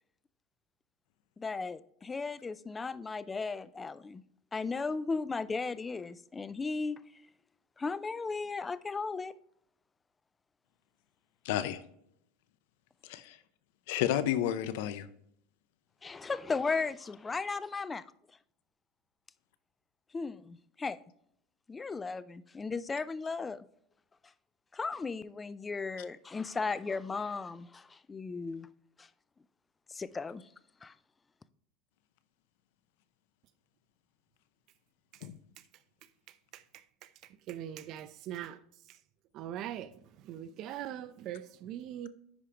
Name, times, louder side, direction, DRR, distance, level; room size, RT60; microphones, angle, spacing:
voice 1, 1.4-4.2 4.5-7.0 7.8-9.4 16.0-18.0 20.1-21.0 21.7-23.6 24.7-28.7 29.0-29.1 29.9-30.5 30.8-30.9, left 4 dB, 15° left, 0.3 m, -36 dB
voice 2, 11.4-11.8 13.0-13.4 13.9-15.1 35.2-35.3, left 11 dB, 75° left, 0.6 m, -31 dB
voice 3, 36.5-38.6 38.9-39.0 39.3-42.1, right 11 dB, 50° right, 0.6 m, -42 dB
10.5 x 4.9 x 2.9 m
supercardioid pair, 130°, 0 cm